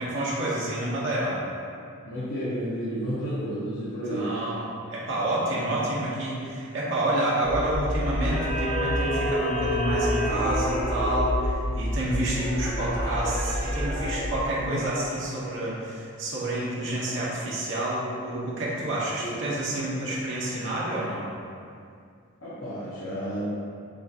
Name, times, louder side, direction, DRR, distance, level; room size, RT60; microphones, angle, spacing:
voice 1, 0.0-1.4 4.1-21.3, right 1 dB, 55° right, -7 dB, 0.9 m, -29 dB
voice 2, 2.1-4.3 14.6-14.8 18.7-18.9 19.2-19.4 22.4-23.5, equal, 70° left, -10 dB, 0.9 m, -31 dB
sound 1, 7.4-14.4, equal, 45° left, 0.9 m, -28 dB
7.0 x 2.5 x 2.8 m, 2.3 s
head